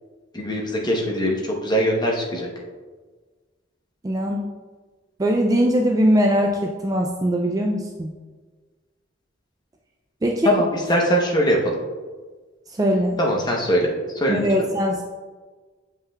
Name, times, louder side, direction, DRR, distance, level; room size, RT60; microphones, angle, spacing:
voice 1, 0.3-2.5 10.4-11.8 13.2-13.9 14.1-14.5, equal, 20° left, -2 dB, 0.9 m, -21 dB
voice 2, 4.0-4.4 5.2-8.1 10.2-10.5 12.8-13.2 14.3-15.0, equal, 20° right, 1 dB, 0.3 m, -21 dB
7.4 x 5.5 x 2.3 m, 1.4 s
head